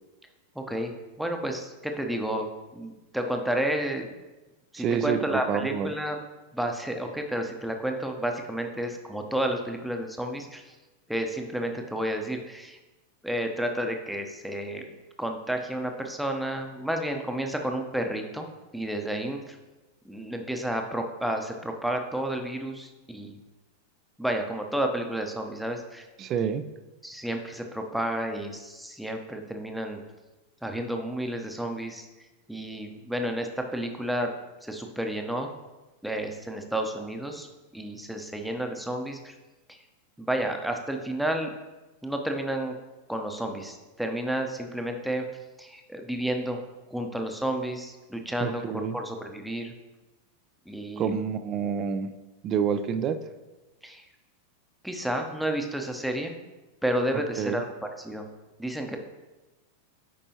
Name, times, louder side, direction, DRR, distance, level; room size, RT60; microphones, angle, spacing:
voice 1, 0.5-0.9 1.2-4.1 4.7-6.2 6.5-10.8 11.1-12.8 13.2-14.8 15.2-19.6 20.0-23.4 24.2-26.1 27.0-30.0 30.6-32.1 32.5-34.3 34.6-35.5 36.0-37.5 37.7-39.3 39.7-39.8 40.2-41.5 42.0-42.7 43.1-45.2 45.6-46.6 46.9-49.7 50.7-51.1 53.8-54.1 54.8-56.3 56.8-58.3 58.6-59.0, right 1 dB, ahead, 3 dB, 0.7 m, -31 dB
voice 2, 4.8-5.9 26.2-26.7 48.4-49.0 51.0-52.1 52.4-53.2 57.4-57.6, right 7 dB, 30° right, 12 dB, 0.4 m, -28 dB
8.4 x 5.3 x 2.8 m, 1.1 s
figure-of-eight pair, 90°, 0 cm